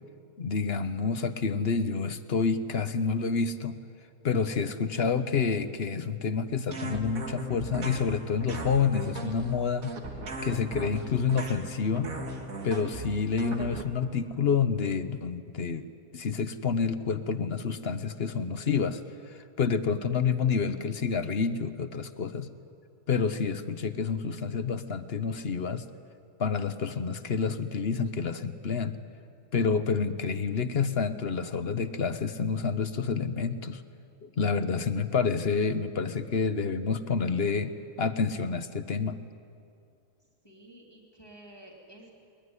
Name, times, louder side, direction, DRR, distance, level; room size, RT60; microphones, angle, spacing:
voice 1, 0.4-3.8 4.2-10.0 10.4-12.1 12.6-15.8 16.1-19.0 19.3-22.5 23.1-25.8 26.4-29.0 29.5-33.8 34.2-39.2, left 5 dB, 50° left, 11 dB, 1.1 m, -28 dB
sound 1, 6.7-13.8, right 2 dB, 85° right, 2.4 m, -37 dB
voice 2, 40.2-42.1, right 1 dB, 15° left, -2 dB, 3.0 m, -52 dB
22.0 x 21.0 x 9.6 m, 2.5 s
omnidirectional pair, 1.4 m